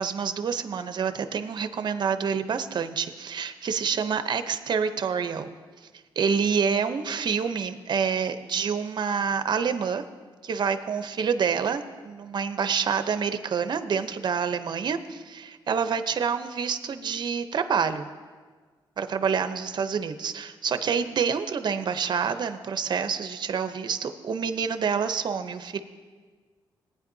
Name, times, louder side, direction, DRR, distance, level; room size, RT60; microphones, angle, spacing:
voice 1, 0.0-5.5 6.2-10.0 10.4-18.1 19.0-25.8, right 6 dB, 55° right, 9 dB, 0.7 m, -27 dB
19.0 x 9.7 x 2.7 m, 1.5 s
cardioid pair, 105°, 9 cm